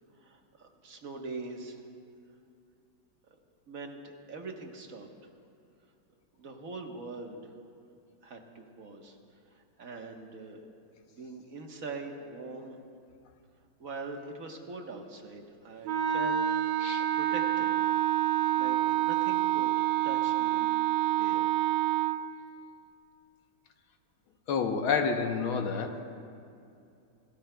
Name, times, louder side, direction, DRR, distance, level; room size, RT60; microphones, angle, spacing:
voice 1, 0.2-1.8 3.7-5.1 6.4-7.4 8.2-9.2 9.5-10.6 11.1-12.8 13.8-16.4 17.0-17.8 18.5-19.7 20.0-20.7 21.1-21.6, right 3 dB, 45° right, 2 dB, 1.5 m, -42 dB
Wind instrument woodwind instrument, 15.8-22.2, right 12 dB, 75° right, 1.3 m, -27 dB
voice 2, 24.5-26.0, left 5 dB, 75° left, 5 dB, 1.8 m, -29 dB
27.0 x 18.0 x 2.3 m, 2.4 s
omnidirectional pair, 2.3 m